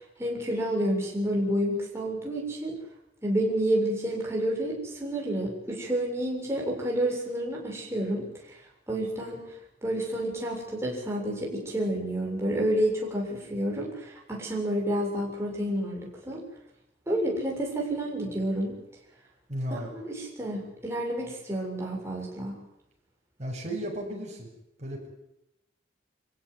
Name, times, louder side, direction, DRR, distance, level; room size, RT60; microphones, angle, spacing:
voice 1, 0.2-2.8 3.2-8.6 8.9-9.4 9.8-16.4 17.1-18.8 19.7-22.5, right 1 dB, 15° right, -3 dB, 6.9 m, -29 dB
voice 2, 19.5-19.9 23.4-24.5 24.8-25.1, equal, 40° right, -1 dB, 7.8 m, -34 dB
26.0 x 16.0 x 9.7 m, 0.82 s
head